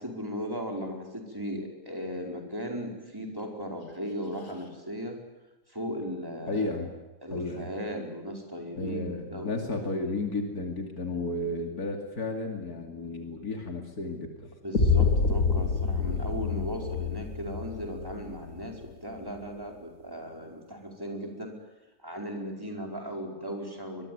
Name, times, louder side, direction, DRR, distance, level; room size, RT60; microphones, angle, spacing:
voice 1, 0.0-5.2 5.7-6.8 7.2-9.5 11.1-11.2 14.6-21.5 22.0-24.1, equal, 15° right, 1 dB, 4.9 m, -37 dB
voice 2, 6.5-6.9 7.3-7.7 8.7-14.5, left 2 dB, 90° left, 3 dB, 3.1 m, -33 dB
Cinematic Hit Bass (title), 14.7-18.7, left 4 dB, 65° left, 4.5 m, -27 dB
24.5 x 21.5 x 9.5 m, 1.1 s
omnidirectional pair, 1.6 m